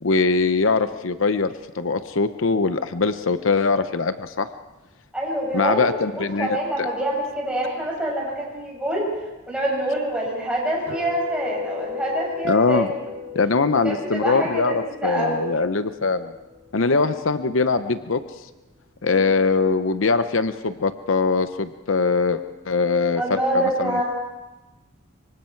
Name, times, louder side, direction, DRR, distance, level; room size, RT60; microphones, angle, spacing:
voice 1, 0.0-4.5 5.5-6.9 12.4-12.9 13.3-16.3 16.7-18.2 19.0-24.0, left 4 dB, 75° left, 11 dB, 0.8 m, -22 dB
voice 2, 5.1-5.9 6.1-9.1 9.5-12.9 13.8-15.5 16.8-17.0 19.1-19.3 23.2-24.0, right 1 dB, 5° right, -4 dB, 7.8 m, -26 dB
sound 1, 10.9-16.9, left 7 dB, 70° right, 5.1 m, -37 dB
25.0 x 24.0 x 4.6 m, 1.1 s
head